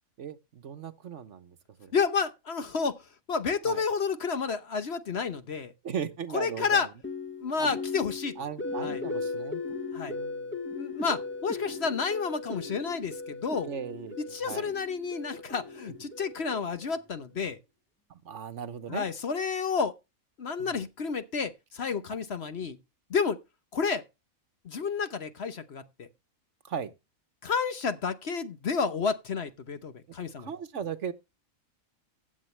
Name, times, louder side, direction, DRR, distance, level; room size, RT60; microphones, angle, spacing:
voice 1, 0.2-1.9 3.6-3.8 5.8-6.9 7.6-7.7 8.4-9.6 10.1-10.6 13.6-14.7 15.9-16.0 18.1-19.1 20.6-20.8 26.6-26.9 30.4-31.1, right 7 dB, 60° right, 1.2 m, -37 dB
voice 2, 1.9-3.0 3.3-5.7 6.3-6.9 7.4-8.3 8.8-9.0 9.9-10.2 10.8-13.7 14.3-17.6 18.9-19.9 20.4-22.8 23.1-23.4 23.7-24.0 24.6-26.1 27.4-30.5, left 5 dB, 50° left, 1.1 m, -30 dB
sound 1, 7.0-17.1, left 3 dB, 10° left, 0.8 m, -37 dB
15.0 x 8.6 x 3.2 m
omnidirectional pair, 1.5 m